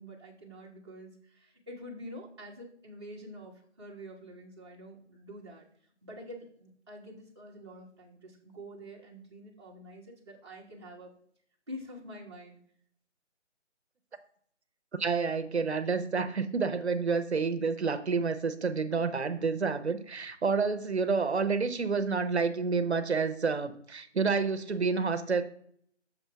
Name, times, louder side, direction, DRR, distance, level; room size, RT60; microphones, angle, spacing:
voice 1, 0.0-5.7 6.0-11.1 11.7-12.6, equal, 25° right, -5 dB, 1.1 m, -47 dB
voice 2, 15.0-25.4, right 4 dB, 65° right, 10 dB, 0.8 m, -29 dB
7.2 x 3.1 x 5.6 m, 0.64 s
figure-of-eight pair, 175°, 36 cm